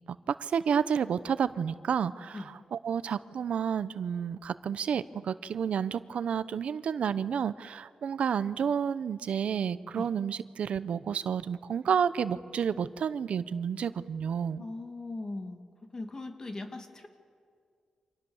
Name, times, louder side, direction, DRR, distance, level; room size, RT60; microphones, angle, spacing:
voice 1, 0.1-14.6, right 7 dB, 85° right, 14 dB, 0.7 m, -30 dB
voice 2, 14.6-15.6 15.9-17.1, left 2 dB, 30° left, 5 dB, 2.4 m, -39 dB
29.5 x 26.0 x 7.2 m, 2.2 s
wide cardioid pair, 150°, 2 cm